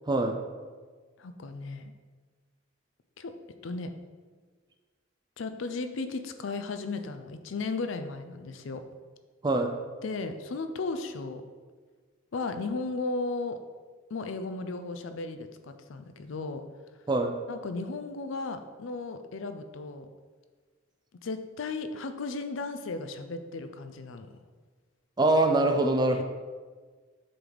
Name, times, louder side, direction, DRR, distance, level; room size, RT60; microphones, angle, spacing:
voice 1, 0.1-0.4 9.4-9.7 17.1-17.4 25.2-26.2, right 2 dB, 20° right, 5 dB, 0.4 m, -24 dB
voice 2, 1.2-1.9 3.2-3.3 3.6-3.9 5.4-8.8 10.0-11.4 12.3-13.6 14.1-16.6 17.5-20.1 21.2-24.4 26.1-26.2, left 3 dB, 70° left, 8 dB, 0.5 m, -35 dB
7.7 x 4.0 x 3.3 m, 1.5 s
head